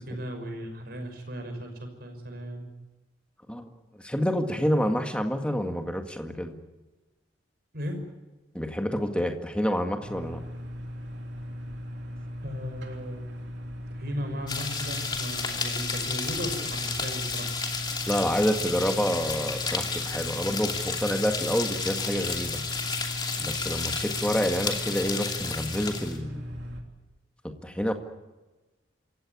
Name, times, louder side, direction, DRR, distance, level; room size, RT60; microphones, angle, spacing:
voice 1, 0.0-1.7 2.0-2.7 7.7-8.0 12.4-13.3 13.9-17.5, equal, 55° right, 5 dB, 6.0 m, -36 dB
voice 2, 4.0-6.6 8.5-10.4 18.1-22.6 23.4-26.4 27.4-27.9, equal, 5° left, 4 dB, 1.9 m, -28 dB
sound 1, 10.0-26.8, equal, 70° right, 3.3 m, -38 dB
sound 2, 14.5-26.2, left 4 dB, 20° left, 2.8 m, -32 dB
27.5 x 16.0 x 9.6 m, 1.1 s
head